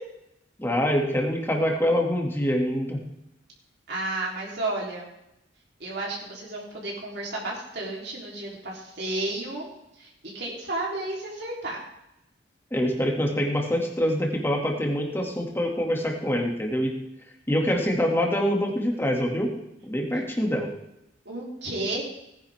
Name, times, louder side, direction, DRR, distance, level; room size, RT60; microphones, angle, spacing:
voice 1, 0.6-3.0 12.7-16.9 17.5-19.5 19.8-20.7, equal, 10° left, 0 dB, 2.4 m, -25 dB
voice 2, 3.9-5.0 5.8-9.7 10.0-10.1 10.3-11.8 21.3-22.0, right 2 dB, 60° right, -4 dB, 3.7 m, -32 dB
18.5 x 10.5 x 3.6 m, 0.84 s
head